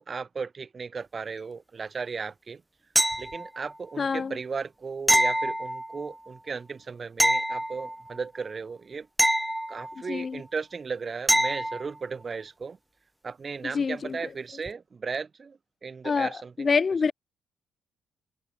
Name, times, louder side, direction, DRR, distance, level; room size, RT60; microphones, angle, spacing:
voice 1, 0.0-2.6 3.2-9.1 9.7-12.8 13.2-16.7, right 5 dB, 35° right, 3.1 m, -36 dB
sound 1, 3.0-3.7 5.1-6.2 7.2-8.2 9.2-10.2 11.3-11.9 14.7-14.8, right 1 dB, 5° right, 0.9 m, -25 dB
voice 2, 4.0-4.3 10.1-10.4 13.7-14.2 16.0-16.3 16.6-17.1, left 5 dB, 35° left, 0.4 m, -25 dB
cardioid pair, 90°, 0 cm